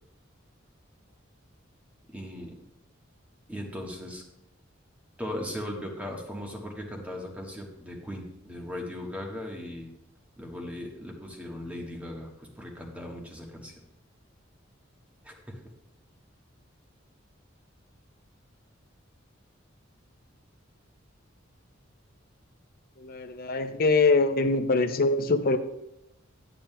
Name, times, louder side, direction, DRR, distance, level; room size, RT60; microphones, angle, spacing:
voice 1, 2.1-2.5 3.5-4.2 5.2-9.9 10.4-13.7 15.2-15.6, left 1 dB, 5° right, 0 dB, 1.2 m, -38 dB
voice 2, 23.0-25.6, left 3 dB, 50° left, 9 dB, 0.6 m, -23 dB
10.0 x 9.0 x 2.2 m, 0.83 s
head